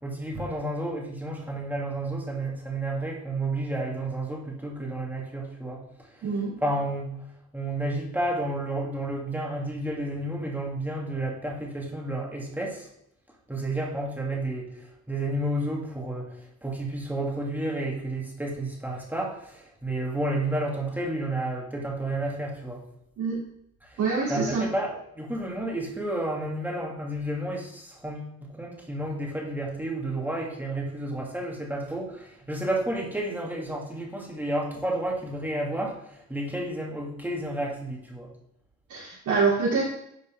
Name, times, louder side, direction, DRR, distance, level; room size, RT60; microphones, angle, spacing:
voice 1, 0.0-7.2 7.5-12.9 13.5-22.8 23.8-24.0 24.3-38.3, right 1 dB, 5° right, -2 dB, 2.7 m, -31 dB
voice 2, 6.2-6.5 23.2-23.4 24.0-24.7 38.9-39.8, right 4 dB, 75° right, -9 dB, 3.7 m, -25 dB
10.5 x 5.2 x 3.8 m, 0.75 s
cardioid pair, 90°, 30 cm